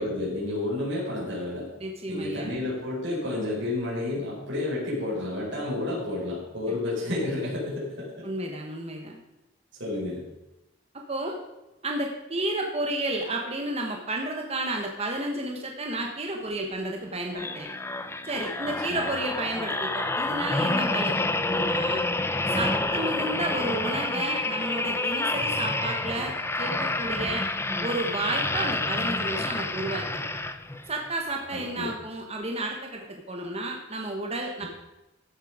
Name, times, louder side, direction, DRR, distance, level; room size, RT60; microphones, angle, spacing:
voice 1, 0.0-1.7 2.1-8.3 9.8-10.2 18.6-19.0 23.1-23.3 31.5-31.9 34.6-34.7, left 2 dB, 65° right, -6 dB, 5.2 m, -31 dB
voice 2, 1.8-2.5 6.7-6.8 8.2-9.2 11.1-11.4 11.8-17.7 18.2-22.0 22.5-27.4 27.8-30.2 30.9-34.7, right 2 dB, 30° right, 1 dB, 1.3 m, -32 dB
sound 1, 17.3-30.9 31.5-31.6, left 2 dB, 10° left, 0.5 m, -28 dB
15.0 x 7.7 x 5.0 m, 0.98 s
head